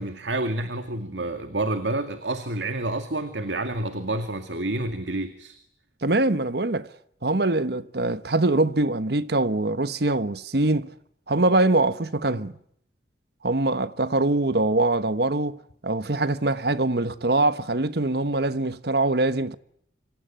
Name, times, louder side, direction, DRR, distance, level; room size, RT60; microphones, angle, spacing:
voice 1, 0.0-5.6, right 2 dB, 80° right, 2.2 m, -29 dB
voice 2, 6.0-6.9 7.2-10.9 11.3-12.5 13.4-15.6 15.8-19.5, right 2 dB, 60° right, 1.3 m, -23 dB
26.0 x 25.5 x 9.0 m
head